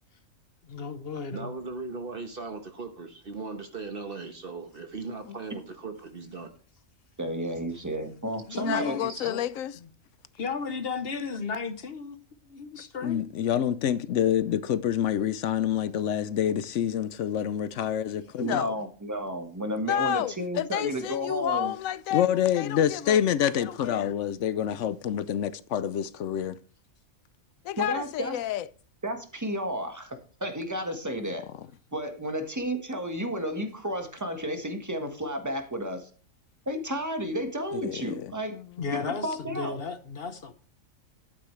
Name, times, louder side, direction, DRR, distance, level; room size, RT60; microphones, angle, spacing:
voice 1, 0.7-1.5 8.5-9.4 10.3-12.2 12.5-13.2 38.8-40.5, left 4 dB, 50° left, 1.1 m, -34 dB
voice 2, 1.3-6.5 9.1-9.3, right 4 dB, 45° right, 1.3 m, -38 dB
voice 3, 7.2-9.1 18.4-21.7 27.8-28.3 29.0-31.5 31.9-36.1 36.7-38.6 38.9-39.8, equal, 15° right, 1.4 m, -32 dB
voice 4, 8.5-9.8 18.4-18.8 19.9-22.3 22.5-23.2 23.5-24.2 27.6-28.7 38.5-39.0, left 11 dB, 90° left, 1.0 m, -31 dB
voice 5, 13.0-18.6 22.1-26.6 37.8-38.3, left 10 dB, 70° left, 0.9 m, -27 dB
11.5 x 8.9 x 3.2 m
omnidirectional pair, 1.4 m